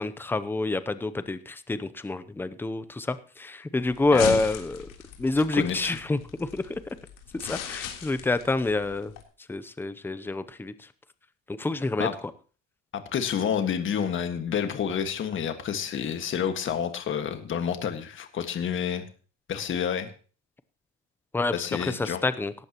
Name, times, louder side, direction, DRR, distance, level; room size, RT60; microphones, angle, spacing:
voice 1, 0.0-4.9 5.2-6.8 7.3-9.1 9.5-10.9 11.5-12.1 21.3-22.5, left 3 dB, 5° left, 13 dB, 0.6 m, -27 dB
sound 1, 3.8-9.2, left 9 dB, 80° left, 3.5 m, -39 dB
voice 2, 12.9-19.0 19.5-20.1 21.5-22.2, left 8 dB, 40° left, 7 dB, 1.7 m, -29 dB
17.5 x 15.0 x 3.0 m, 0.39 s
cardioid pair, 155°, 31 cm